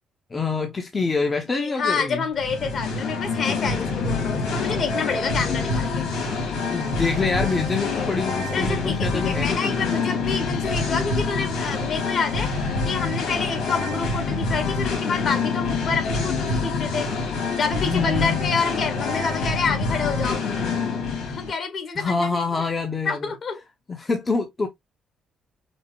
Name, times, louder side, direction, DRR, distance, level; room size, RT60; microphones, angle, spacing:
voice 1, 0.3-2.2 6.7-9.8 17.8-18.4 22.0-23.3 23.9-24.7, left 4 dB, 30° left, 0.7 m, -26 dB
voice 2, 1.5-6.1 7.8-8.2 8.5-17.1 17.6-20.4 21.3-22.4 23.0-23.6, left 5 dB, 55° left, 1.6 m, -28 dB
Singing, 2.3-21.5, left 4 dB, 90° left, 1.8 m, -26 dB
5.4 x 2.1 x 3.0 m
cardioid pair, 90°, 0 cm